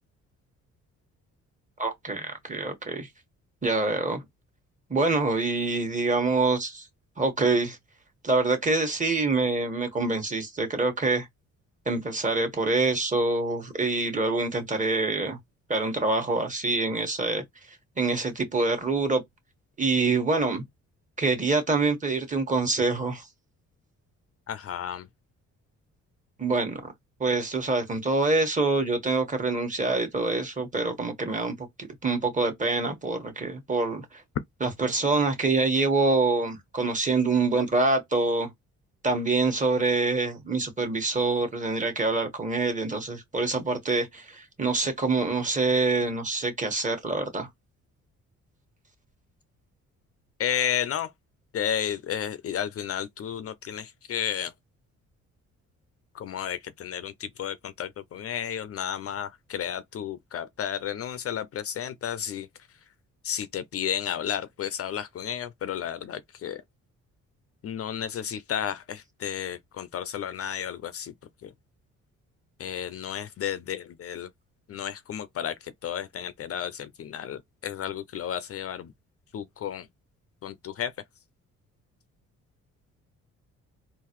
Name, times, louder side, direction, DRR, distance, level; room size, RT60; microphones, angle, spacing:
voice 1, 1.8-3.1 3.6-4.2 4.9-6.9 7.2-7.8 8.2-11.3 11.9-15.4 15.7-17.4 18.0-19.2 19.8-20.6 21.2-23.2 26.4-26.8 27.2-31.7 32.0-34.0 34.6-38.5 39.0-47.5, right 3 dB, 25° right, 1.3 m, -25 dB
voice 2, 24.5-25.1 50.4-51.1 51.5-54.5 56.1-62.5 63.2-66.6 67.6-71.1 71.4-71.5 72.6-74.3 74.7-78.9 79.3-79.9 80.4-80.9, left 9 dB, 50° left, 0.5 m, -32 dB
3.8 x 2.5 x 3.0 m
cardioid pair, 90°, 30 cm